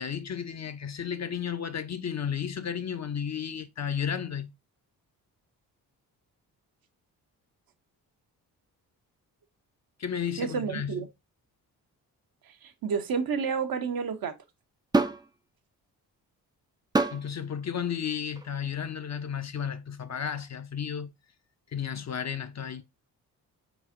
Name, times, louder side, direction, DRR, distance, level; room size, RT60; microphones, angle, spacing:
voice 1, 0.0-4.5 10.0-11.0 17.1-21.1 21.7-22.8, left 8 dB, 35° left, 0.6 m, -33 dB
voice 2, 10.4-11.1 12.5-14.3, right 6 dB, 50° right, 0.8 m, -30 dB
sound 1, 14.9-15.3 16.9-17.3 18.3-18.5, right 3 dB, 10° right, 0.4 m, -25 dB
4.0 x 4.0 x 2.5 m
hypercardioid pair, 40°, 46 cm